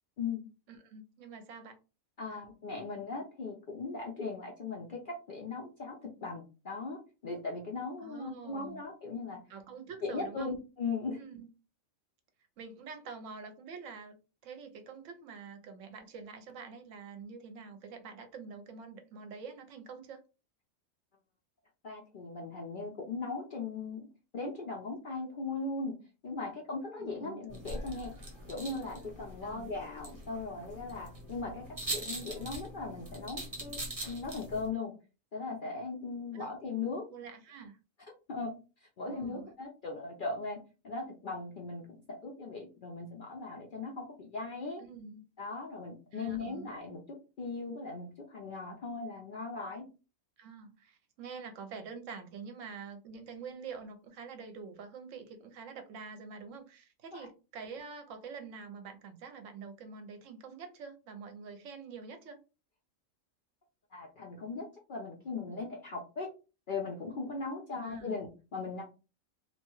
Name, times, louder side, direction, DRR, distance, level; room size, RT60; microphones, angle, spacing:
voice 1, 0.2-0.5 2.2-9.4 10.0-11.2 21.8-24.1 24.3-25.9 26.2-28.1 28.5-34.9 35.3-37.1 38.3-38.5 39.0-44.8 45.4-47.0 47.4-49.9 57.2-57.3 63.9-66.3 66.7-68.8, left 3 dB, 55° left, 0.6 m, -39 dB
voice 2, 0.7-1.8 2.3-2.4 8.0-8.8 9.5-10.6 11.2-11.5 12.6-14.2 14.4-20.2 27.0-27.4 29.4-29.7 36.3-36.6 37.1-37.8 39.0-39.5 44.8-45.2 46.1-46.7 50.4-62.4 67.7-68.2, right 5 dB, 70° right, 0.9 m, -46 dB
sound 1, 27.5-34.7, right 1 dB, 30° right, 0.9 m, -42 dB
2.8 x 2.2 x 3.0 m
omnidirectional pair, 1.4 m